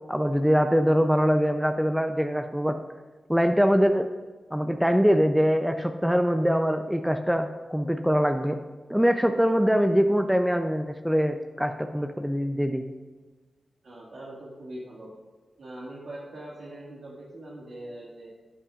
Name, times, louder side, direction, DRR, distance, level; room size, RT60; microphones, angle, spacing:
voice 1, 0.0-2.8 3.3-4.1 4.5-8.6 8.9-12.8, equal, 5° right, 6 dB, 0.6 m, -23 dB
voice 2, 13.8-15.1 15.6-18.3, right 1 dB, 80° right, -7 dB, 2.0 m, -42 dB
13.0 x 8.4 x 2.5 m, 1.3 s
cardioid pair, 45°, 0 cm